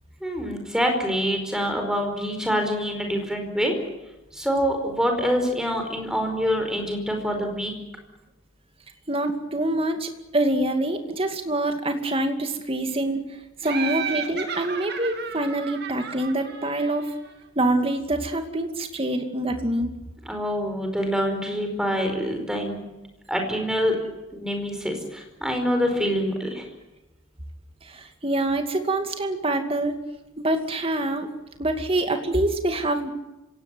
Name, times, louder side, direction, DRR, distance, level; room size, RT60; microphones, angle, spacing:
voice 1, 0.2-3.8 4.3-7.7 20.2-22.8 23.3-24.0 24.3-26.6, equal, 5° right, 4 dB, 4.8 m, -25 dB
voice 2, 9.1-13.3 13.6-17.1 17.6-19.9 27.8-29.9 30.4-31.3 31.6-33.1, right 1 dB, 25° right, 6 dB, 2.4 m, -25 dB
Laughter, 13.6-17.3, right 7 dB, 50° right, 2.7 m, -33 dB
25.5 x 17.5 x 9.2 m, 1.0 s
head